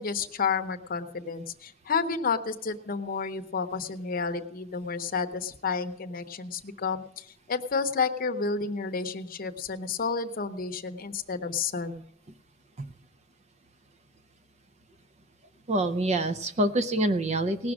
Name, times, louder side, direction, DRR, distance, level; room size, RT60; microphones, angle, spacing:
voice 1, 0.0-12.0, left 5 dB, 45° left, 7 dB, 0.8 m, -31 dB
voice 2, 15.7-17.7, right 1 dB, 35° right, 11 dB, 0.5 m, -26 dB
18.0 x 6.1 x 6.1 m, 0.72 s
head